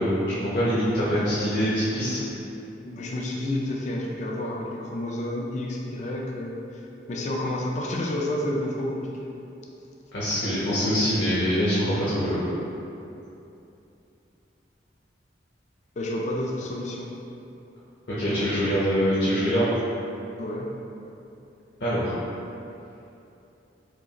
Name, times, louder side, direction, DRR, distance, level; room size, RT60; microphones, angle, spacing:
voice 1, 0.0-2.2 10.1-12.4 18.2-19.7 21.8-22.2, equal, 60° left, -11 dB, 0.9 m, -24 dB
voice 2, 2.8-9.3 16.0-17.2 20.4-20.7, left 1 dB, 40° left, -1 dB, 0.4 m, -30 dB
5.0 x 2.4 x 2.9 m, 2.8 s
head